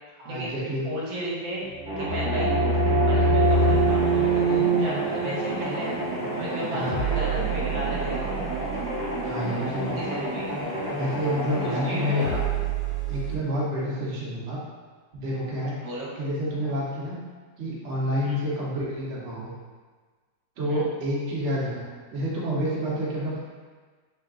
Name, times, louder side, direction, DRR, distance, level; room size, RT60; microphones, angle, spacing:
voice 1, 0.2-0.9 6.7-7.0 9.2-10.0 10.9-12.2 13.1-14.6 15.1-15.8 16.2-17.2 17.6-19.5 20.6-21.8 22.1-23.4, equal, 85° right, -6 dB, 0.6 m, -29 dB
voice 2, 0.8-1.6 2.0-2.5 3.0-5.9 6.3-8.4 10.0-10.5 11.5-12.4 15.8-16.1 18.2-18.4 20.6-20.8, right 1 dB, 70° right, -5 dB, 1.4 m, -34 dB
sound 1, 1.7-7.3, right 2 dB, 35° left, 1.5 m, -24 dB
sound 2, 1.9-12.3, equal, 5° right, 0.5 m, -31 dB
sound 3, 3.4-13.4, right 9 dB, 75° left, 1.4 m, -34 dB
3.5 x 3.5 x 2.3 m, 1.4 s
omnidirectional pair, 2.4 m